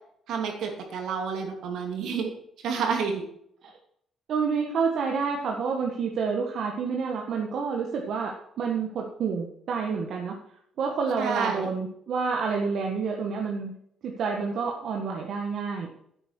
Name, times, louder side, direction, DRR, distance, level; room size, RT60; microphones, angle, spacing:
voice 1, 0.3-2.3 2.6-3.2 11.2-11.7, right 6 dB, 80° right, 2 dB, 2.9 m, -29 dB
voice 2, 4.3-10.4 10.8-13.7 14.0-15.9, right 5 dB, 65° right, 0 dB, 1.6 m, -29 dB
11.0 x 8.9 x 4.5 m, 0.70 s
cardioid pair, 115°, 0 cm